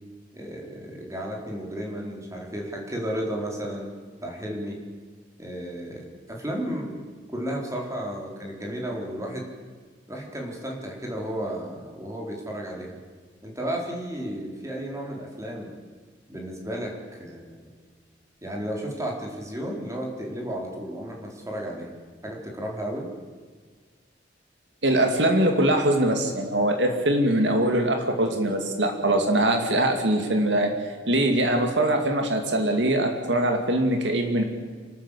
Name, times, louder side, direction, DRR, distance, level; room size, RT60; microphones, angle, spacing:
voice 1, 0.3-3.9 4.2-4.8 5.4-7.0 7.3-9.5 10.1-13.0 13.4-15.7 16.3-16.9 17.2-17.6 18.4-21.9 22.2-23.1, equal, 15° right, 0 dB, 4.2 m, -33 dB
voice 2, 24.8-30.7 31.1-34.4, right 1 dB, 80° right, 4 dB, 2.6 m, -22 dB
27.5 x 12.5 x 8.5 m, 1.5 s
head